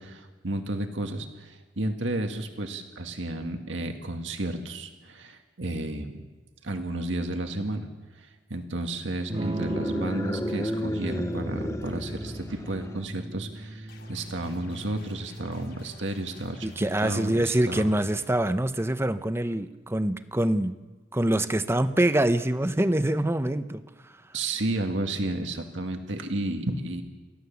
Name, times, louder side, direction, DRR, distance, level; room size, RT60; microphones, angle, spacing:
voice 1, 0.0-6.2 6.6-7.9 8.1-17.9 24.3-27.0, right 1 dB, 90° right, 5 dB, 1.9 m, -32 dB
Electric guitar / Strum, 9.3-19.1, right 2 dB, 30° right, 1.2 m, -38 dB
sound 1, 9.4-13.1, left 1 dB, 15° left, 0.6 m, -33 dB
sound 2, 13.9-18.3, left 2 dB, 65° left, 5.4 m, -52 dB
voice 2, 16.6-20.7 21.1-23.8, right 1 dB, 15° right, 11 dB, 0.8 m, -25 dB
28.5 x 15.5 x 7.1 m, 1.3 s
head